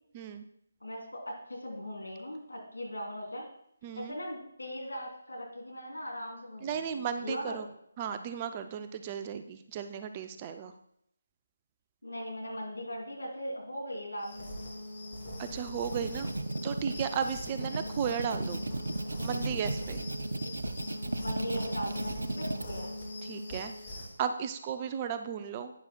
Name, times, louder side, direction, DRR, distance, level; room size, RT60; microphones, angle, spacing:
voice 1, 0.1-0.5 3.8-4.2 6.6-7.7 8.0-10.7 15.4-16.3 16.6-18.6 19.2-20.0 23.2-23.7 24.2-25.7, right 7 dB, 20° right, 9 dB, 0.4 m, -35 dB
voice 2, 0.8-3.5 3.9-7.6 12.0-14.7 20.4-20.5 21.2-22.9, equal, 70° left, 0 dB, 2.9 m, -39 dB
sound 1, 14.2-24.1, left 1 dB, 25° left, 2.9 m, -41 dB
sound 2, 15.6-22.7, right 2 dB, 65° right, 0.6 m, -36 dB
11.5 x 9.5 x 2.3 m, 0.74 s
figure-of-eight pair, 150°, 0 cm